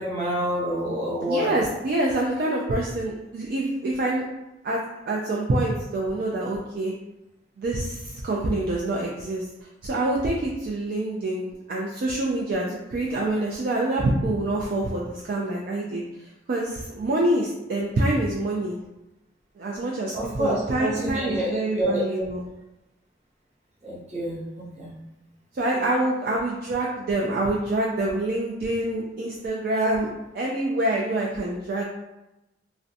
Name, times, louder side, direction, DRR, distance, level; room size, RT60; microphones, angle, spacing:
voice 1, 0.0-1.5 20.1-22.0 23.8-24.9, equal, 40° right, -6 dB, 0.7 m, -28 dB
voice 2, 1.3-4.2 4.6-4.8 5.1-6.9 7.6-9.4 9.8-18.8 19.6-22.4 25.5-30.1 30.3-31.9, right 1 dB, 55° right, -3 dB, 0.3 m, -26 dB
2.5 x 2.1 x 2.6 m, 0.96 s
head